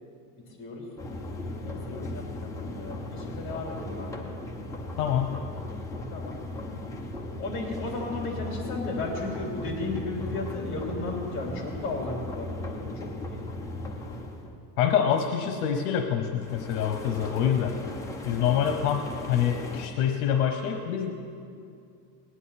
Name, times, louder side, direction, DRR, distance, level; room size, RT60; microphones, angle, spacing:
voice 1, 0.5-0.8 1.6-4.3 6.1-6.4 7.4-13.4, left 2 dB, 25° left, -1 dB, 3.2 m, -35 dB
sound 1, 1.0-14.5 16.4-19.9, left 2 dB, 5° left, 0.6 m, -37 dB
voice 2, 5.0-5.4 14.8-17.8 18.2-21.1, left 8 dB, 70° left, 5 dB, 1.1 m, -26 dB
19.0 x 10.0 x 4.2 m, 2.4 s
cardioid pair, 170°, 47 cm